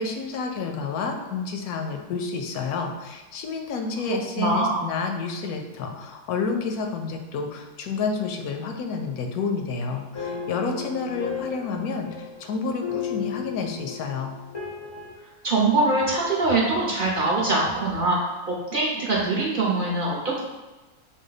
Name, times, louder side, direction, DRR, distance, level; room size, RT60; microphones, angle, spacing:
voice 1, 0.0-14.4, left 4 dB, 85° left, 4 dB, 1.1 m, -29 dB
voice 2, 4.1-4.8 15.4-20.4, right 2 dB, 45° right, -4 dB, 0.8 m, -23 dB
sound 1, 10.1-15.2, left 6 dB, 40° left, 0.4 m, -34 dB
4.9 x 2.2 x 3.9 m, 1.1 s
omnidirectional pair, 1.5 m